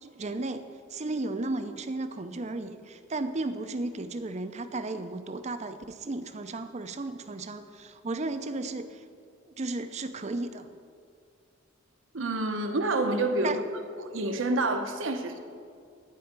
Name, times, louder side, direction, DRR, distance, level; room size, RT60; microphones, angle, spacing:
voice 1, 0.0-0.6 0.9-9.0 9.6-10.7 13.4-13.6, right 2 dB, 35° right, 9 dB, 0.6 m, -34 dB
voice 2, 12.1-13.6 14.0-15.4, right 2 dB, 70° right, 6 dB, 1.0 m, -28 dB
13.5 x 4.9 x 8.9 m, 2.3 s
head